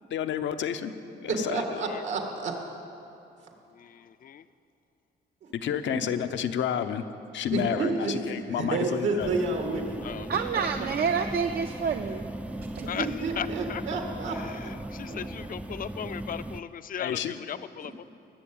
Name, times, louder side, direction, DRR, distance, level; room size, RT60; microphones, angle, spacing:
voice 1, 0.1-0.9 1.2-1.8 5.5-7.0 7.3-9.3 17.0-17.3, left 9 dB, 80° left, 9 dB, 0.8 m, -30 dB
voice 2, 1.3-2.5 5.7-5.8 7.5-8.1 8.6-10.0 10.5-10.9 12.5-14.4 15.1-15.2, right 3 dB, 80° right, 3 dB, 2.1 m, -30 dB
voice 3, 3.7-4.4 10.0-10.6 12.8-13.8 14.3-18.0, left 8 dB, 50° left, 13 dB, 0.5 m, -37 dB
sound 1, 9.2-16.6, right 1 dB, 5° right, 0.4 m, -38 dB
voice 4, 10.3-12.3 12.7-12.8, right 6 dB, 60° right, 6 dB, 0.6 m, -28 dB
20.0 x 7.1 x 8.8 m, 2.8 s
cardioid pair, 110°, 19 cm